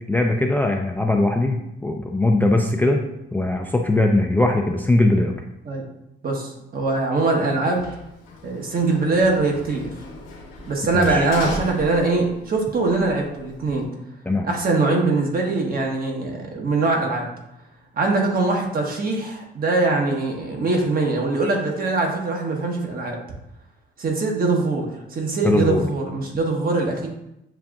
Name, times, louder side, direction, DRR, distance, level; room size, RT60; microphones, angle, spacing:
voice 1, 0.1-3.1 3.3-5.3 10.9-11.3 14.3-14.5 25.4-25.8, left 2 dB, 10° left, 3 dB, 0.3 m, -20 dB
voice 2, 6.2-7.9 8.4-9.9 10.7-13.9 14.4-17.3 17.9-23.2 24.0-27.1, right 3 dB, 50° right, 1 dB, 1.0 m, -22 dB
Sliding door, 7.8-12.6 12.9-13.8, left 2 dB, 80° left, 1.0 m, -36 dB
6.9 x 2.4 x 2.3 m, 0.83 s
cardioid pair, 90°, 20 cm